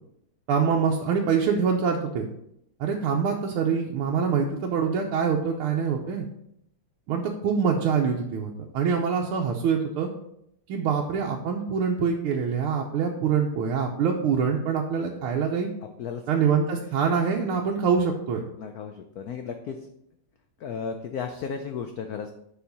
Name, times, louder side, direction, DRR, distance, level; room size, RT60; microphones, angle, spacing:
voice 1, 0.5-2.3 2.8-6.3 7.1-10.1 10.7-15.7 16.3-18.4, right 6 dB, 90° right, -1 dB, 1.6 m, -25 dB
voice 2, 18.6-19.8 20.6-22.3, left 6 dB, 85° left, 6 dB, 0.8 m, -34 dB
7.0 x 4.7 x 5.3 m, 0.76 s
omnidirectional pair, 2.3 m